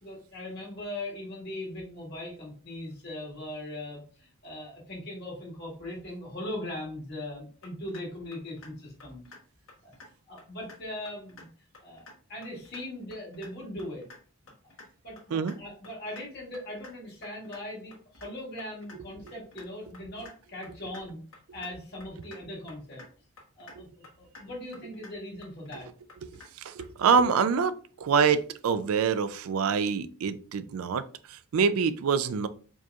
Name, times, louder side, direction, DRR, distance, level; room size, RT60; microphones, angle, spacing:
voice 1, 0.0-9.3 9.8-9.9 10.3-11.5 11.8-14.1 15.0-21.2 21.5-23.0 23.6-25.9, left 1 dB, 50° left, -4 dB, 1.7 m, -40 dB
sound 1, 7.6-8.0 8.3-8.7 9.0-9.4 9.7-10.1 10.4-10.8 11.1-11.5 11.7-12.1 12.4-12.8 13.1-13.5 13.8-14.2 14.5-14.9 15.2-15.6 15.8-16.2 16.5-16.9 17.2-17.6 17.9-18.3 18.6-19.0 19.3-19.7 19.9-20.3 20.6-21.0 21.3-21.7 22.0-22.4 22.7-23.1 23.4-23.8 24.0-24.4 24.7-25.1 25.4-25.8 26.1-26.5 26.8-27.2, left 3 dB, 75° left, 1.2 m, -49 dB
voice 2, 26.6-32.5, right 6 dB, 85° right, 12 dB, 0.4 m, -26 dB
4.5 x 2.9 x 2.3 m, 0.41 s
head